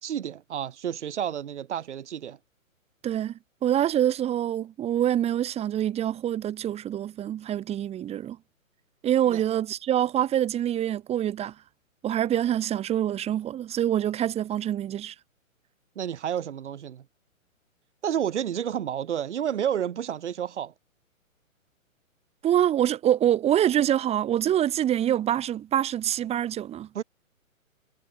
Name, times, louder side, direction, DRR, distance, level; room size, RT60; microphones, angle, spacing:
voice 1, 0.0-2.4 9.3-9.4 15.9-17.0 18.0-20.7 26.9-27.0, right 9 dB, 55° right, 3.3 m, -30 dB
voice 2, 3.0-3.3 3.6-8.4 9.0-11.5 12.0-15.1 22.4-26.9, right 11 dB, 15° right, 3.1 m, -25 dB
hypercardioid pair, 140°, 41 cm